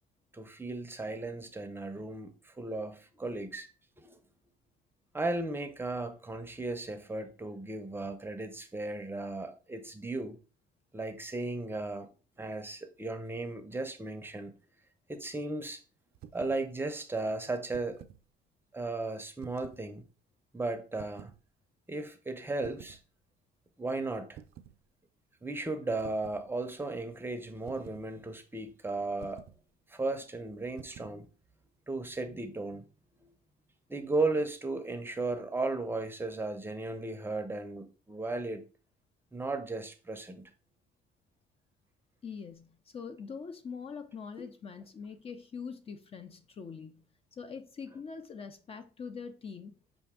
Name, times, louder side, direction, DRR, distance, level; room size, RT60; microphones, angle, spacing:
voice 1, 0.3-3.7 4.0-4.2 5.1-10.4 10.9-12.1 12.4-14.5 15.1-15.8 16.3-18.0 18.7-20.0 20.5-21.3 21.9-23.0 23.8-24.4 25.4-29.5 29.9-31.3 31.9-32.8 33.9-38.6 39.3-40.4, right 2 dB, 15° right, 0.6 m, -35 dB
sound 1, 16.1-16.6 17.5-18.2 19.4-19.9 20.9-21.4 22.6-23.0 24.3-24.8 26.0-26.5 27.7-28.1 29.2-29.6 30.8-31.2, right 10 dB, 65° right, 0.4 m, -50 dB
voice 2, 42.2-47.0 47.3-49.7, left 5 dB, 35° left, 0.5 m, -43 dB
5.8 x 2.6 x 3.5 m
cardioid pair, 110°, 17 cm